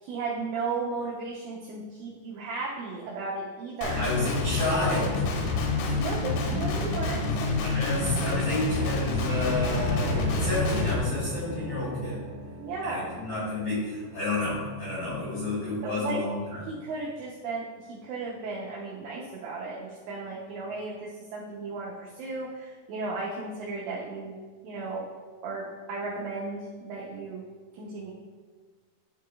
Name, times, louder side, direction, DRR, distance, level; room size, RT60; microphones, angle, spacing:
voice 1, 0.0-4.1 4.5-4.6 6.0-7.9 12.6-13.2 15.8-16.2 16.7-24.4 24.6-25.1 25.4-27.4 27.7-28.1, right 3 dB, 80° right, -4 dB, 2.5 m, -35 dB
Guitar, 3.8-11.0, left 3 dB, 90° left, 3.4 m, -28 dB
voice 2, 4.0-5.1 7.6-12.2 12.8-16.6, left 2 dB, 50° left, -10 dB, 2.2 m, -30 dB
sound 1, 9.3-16.1, right 2 dB, 60° right, 3.3 m, -39 dB
11.0 x 4.8 x 2.3 m, 1.5 s
omnidirectional pair, 5.9 m